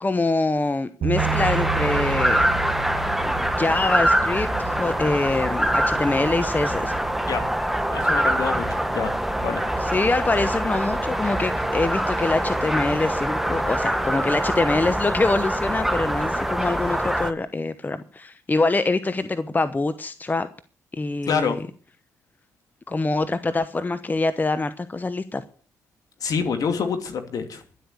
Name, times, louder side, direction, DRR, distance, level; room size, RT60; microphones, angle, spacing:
voice 1, 0.0-2.5 3.3-7.0 9.8-20.5 20.9-21.6 22.9-25.4, left 3 dB, 25° left, 12 dB, 0.9 m, -25 dB
Bass guitar, 1.0-7.3, right 7 dB, 65° right, 2.0 m, -32 dB
sound 1, 1.2-17.3, right 1 dB, 5° right, 1.3 m, -24 dB
voice 2, 7.9-9.1 9.4-9.7 21.3-21.6 26.2-27.6, left 6 dB, 60° left, 6 dB, 2.6 m, -26 dB
11.5 x 8.0 x 8.4 m, 0.42 s
hypercardioid pair, 50°, 7 cm